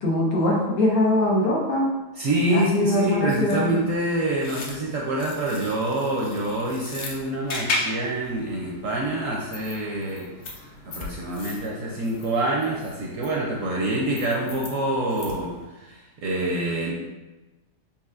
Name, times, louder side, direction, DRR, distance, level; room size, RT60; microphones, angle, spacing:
voice 1, 0.0-1.9 2.5-3.7, left 1 dB, 90° left, -3 dB, 1.7 m, -22 dB
voice 2, 2.2-16.9, right 1 dB, 65° right, -2 dB, 0.8 m, -26 dB
sound 1, 3.0-15.7, left 2 dB, 60° left, 0.9 m, -37 dB
6.8 x 2.8 x 2.4 m, 1.1 s
omnidirectional pair, 1.9 m